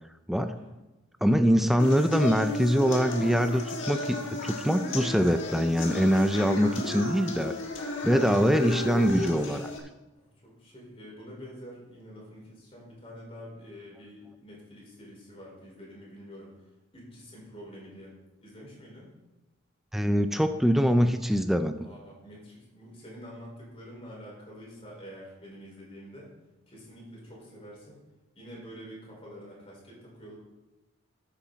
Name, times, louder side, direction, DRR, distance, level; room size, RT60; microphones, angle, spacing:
voice 1, 0.4-0.7 10.1-16.5 16.9-18.2 18.4-19.1 21.8-26.3 26.7-28.0 28.3-30.3, equal, 25° left, -4 dB, 4.5 m, -47 dB
voice 2, 1.2-4.2 4.4-7.5 8.0-9.7 19.9-21.9, equal, ahead, 8 dB, 0.4 m, -24 dB
sound 1, 1.8-9.8, left 1 dB, 60° left, 1.7 m, -33 dB
13.0 x 8.5 x 4.0 m, 1.1 s
head